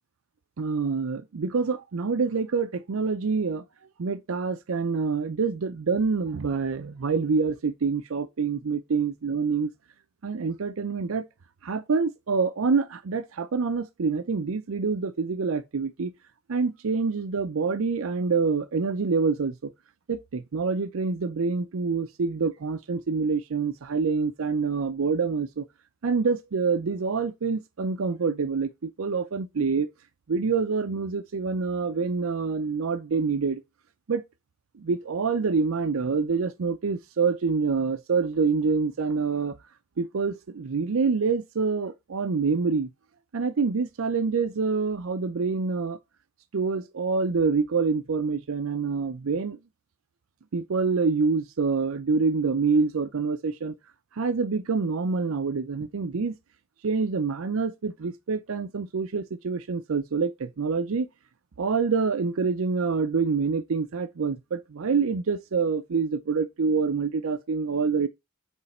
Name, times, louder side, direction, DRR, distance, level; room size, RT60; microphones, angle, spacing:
voice 1, 0.6-3.6 4.0-9.7 10.2-11.3 11.6-16.1 16.5-19.7 20.1-25.6 26.0-29.9 30.3-33.6 34.1-34.2 34.8-39.6 40.0-42.9 43.3-46.0 46.5-49.6 50.5-53.7 54.2-56.4 56.8-61.1 61.6-68.1, right 4 dB, 75° right, 0.5 m, -26 dB
8.1 x 3.3 x 4.2 m
head